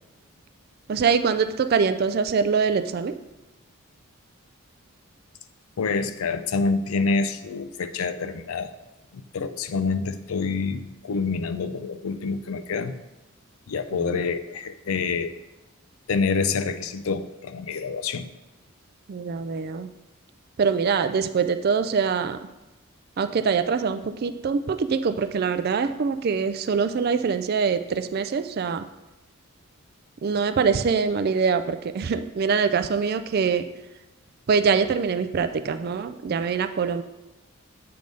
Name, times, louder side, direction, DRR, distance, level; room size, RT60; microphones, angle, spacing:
voice 1, 0.9-3.1 19.1-19.9 20.6-22.4 23.2-28.8 30.2-33.6 34.5-37.0, right 5 dB, 45° right, 11 dB, 0.3 m, -24 dB
voice 2, 5.8-8.7 9.1-12.9 13.7-15.4 16.1-18.3, left 4 dB, 75° left, 11 dB, 0.4 m, -27 dB
7.7 x 3.5 x 5.2 m, 1.0 s
head